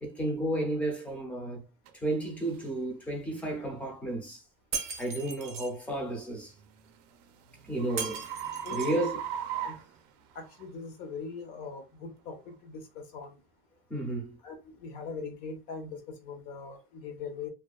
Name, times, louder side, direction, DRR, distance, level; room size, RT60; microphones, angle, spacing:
voice 1, 0.0-1.7 1.9-4.4 5.0-6.5 7.6-8.3 8.7-9.2 13.9-14.4, right 1 dB, 5° left, 0.6 m, -32 dB
sound 1, 1.9-2.0 2.5-2.7 3.3-3.5 6.2-10.7, right 9 dB, 75° right, 0.4 m, -38 dB
Shatter, 4.7-5.7 8.0-9.0, right 5 dB, 30° right, 0.6 m, -37 dB
voice 2, 8.6-9.0 9.5-9.8 10.3-13.4 14.4-17.5, left 5 dB, 55° left, 0.8 m, -41 dB
2.5 x 2.2 x 2.3 m
cardioid pair, 170°, 20 cm